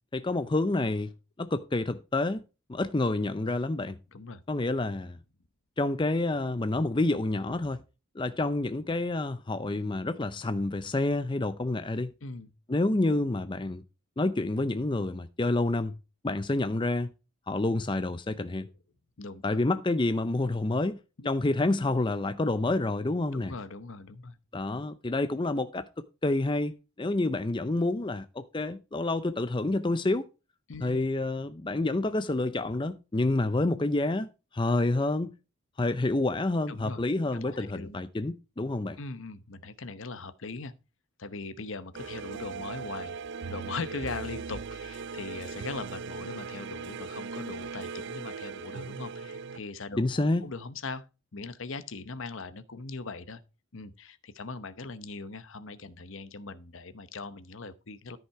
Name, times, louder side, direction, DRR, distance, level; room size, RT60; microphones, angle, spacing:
voice 1, 0.1-1.1 1.4-2.4 2.7-4.0 4.5-5.2 5.8-7.8 8.2-12.1 12.7-13.8 14.2-16.0 16.2-17.1 17.5-18.7 19.4-21.0 21.2-23.5 24.5-30.3 30.8-35.3 35.8-39.0 50.0-50.5, left 2 dB, 20° left, 0.5 m, -28 dB
voice 2, 4.1-4.4 12.2-12.5 19.2-19.6 21.2-21.3 23.3-24.4 30.7-31.1 36.7-37.0 37.3-38.0 39.0-40.7 41.2-43.2 43.5-51.1 51.3-53.4 53.7-58.2, left 3 dB, 60° left, 0.8 m, -40 dB
sound 1, 41.9-49.6, right 5 dB, 50° right, 0.4 m, -39 dB
13.5 x 5.7 x 4.7 m
head